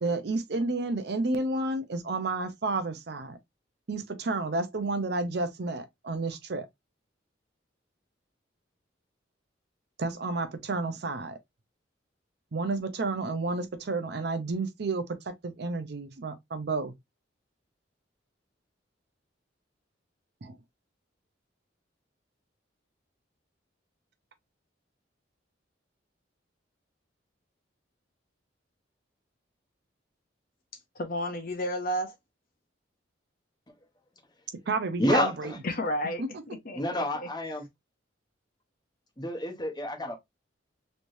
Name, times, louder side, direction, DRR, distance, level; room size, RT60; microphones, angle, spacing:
voice 1, 0.0-3.4 3.9-6.7 10.0-11.4 12.5-16.9 20.4-20.6 34.7-35.5 36.2-36.3, right 3 dB, 60° right, 0.6 m, -31 dB
voice 2, 30.9-32.1 35.6-37.3, equal, 50° left, 0.7 m, -32 dB
voice 3, 35.0-35.6 36.7-37.6 39.2-40.1, left 1 dB, 20° left, 0.9 m, -29 dB
3.2 x 3.1 x 2.6 m
head